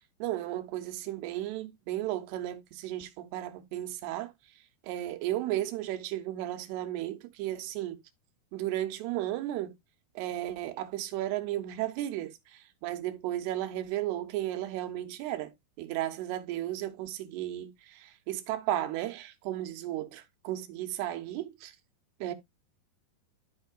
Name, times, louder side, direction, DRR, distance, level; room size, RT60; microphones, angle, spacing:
voice 1, 0.2-4.3 4.8-8.0 8.5-9.7 10.2-15.5 15.8-21.7 22.2-22.3, right 14 dB, 90° right, 2.8 m, -34 dB
13.5 x 4.4 x 2.3 m
omnidirectional pair, 4.5 m